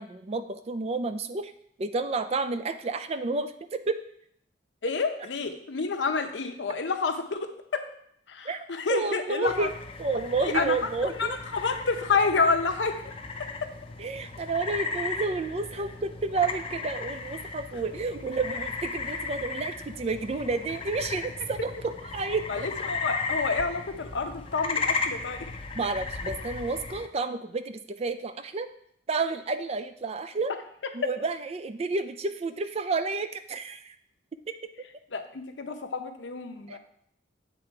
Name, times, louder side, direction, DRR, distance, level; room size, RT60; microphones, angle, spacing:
voice 1, 0.0-1.5 1.8-4.0 8.4-9.7 10.0-11.4 14.0-22.7 25.8-28.7 29.1-30.5 30.9-33.9 36.7-36.8, right 3 dB, 35° right, 10 dB, 0.4 m, -30 dB
voice 2, 4.8-7.8 8.3-9.7 10.4-10.8 11.0-13.0 13.4-13.7 22.5-25.4 31.0-31.1 35.1-36.8, left 4 dB, 80° left, 6 dB, 0.7 m, -29 dB
sound 1, 9.5-27.1, left 4 dB, 30° left, 0.5 m, -35 dB
8.3 x 3.7 x 4.5 m, 0.69 s
head